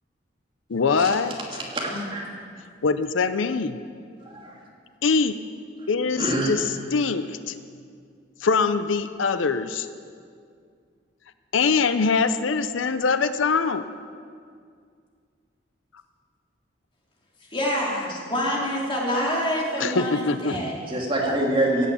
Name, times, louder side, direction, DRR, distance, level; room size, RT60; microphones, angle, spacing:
voice 1, 0.7-1.6 2.8-3.8 5.0-5.4 5.9-7.5 8.4-9.9 11.5-13.8 19.8-20.6, left 4 dB, 85° left, 12 dB, 0.6 m, -23 dB
voice 2, 1.7-2.2 4.3-4.5 6.2-6.5 20.5-20.6 20.9-21.9, right 1 dB, 25° right, -2 dB, 2.6 m, -25 dB
voice 3, 17.5-20.7, equal, 25° left, -3 dB, 2.9 m, -26 dB
16.5 x 8.5 x 8.3 m, 2.2 s
head